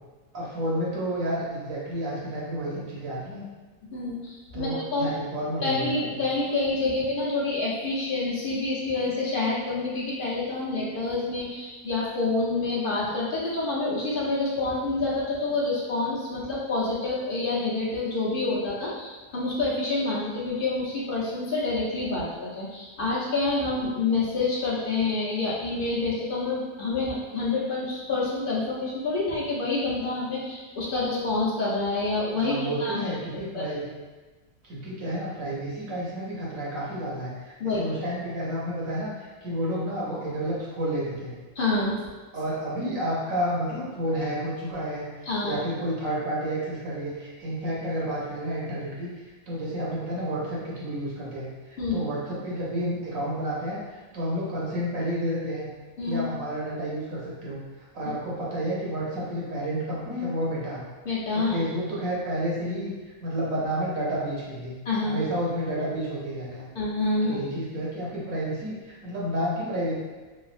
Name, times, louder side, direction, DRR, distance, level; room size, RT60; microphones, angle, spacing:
voice 1, 0.3-3.4 4.5-6.2 32.4-33.9 34.6-41.4 42.3-45.0 45.4-49.1 49.5-55.7 56.0-57.6 57.9-60.8 61.3-62.9 63.2-64.7 65.0-66.7 67.2-69.9, right 1 dB, 70° right, -6 dB, 1.2 m, -30 dB
voice 2, 3.9-5.1 5.6-33.0 33.5-33.6 37.6-37.9 41.6-42.0 45.2-45.6 51.8-52.0 56.0-56.2 61.0-61.6 64.9-65.2 66.7-67.4, left 3 dB, 50° left, -6 dB, 0.7 m, -27 dB
3.2 x 2.3 x 2.4 m, 1.3 s
omnidirectional pair, 1.5 m